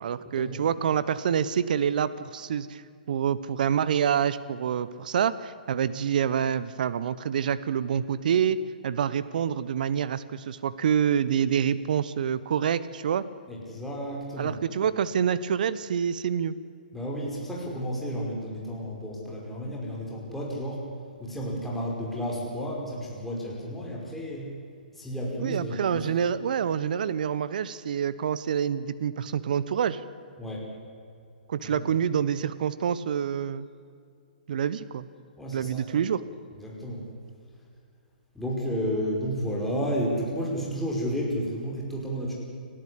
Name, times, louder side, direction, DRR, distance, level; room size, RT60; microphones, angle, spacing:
voice 1, 0.0-13.2 14.4-16.6 25.4-30.0 31.5-33.7 34.5-35.1 35.5-36.2, right 8 dB, 60° right, 15 dB, 1.0 m, -27 dB
voice 2, 13.5-14.6 16.9-20.9 21.2-24.5 24.9-26.1 30.4-30.7 31.6-31.9 35.4-35.9 36.6-37.0 38.3-42.3, equal, 5° left, -4 dB, 5.4 m, -32 dB
29.5 x 12.5 x 8.5 m, 2.3 s
hypercardioid pair, 130°, 5 cm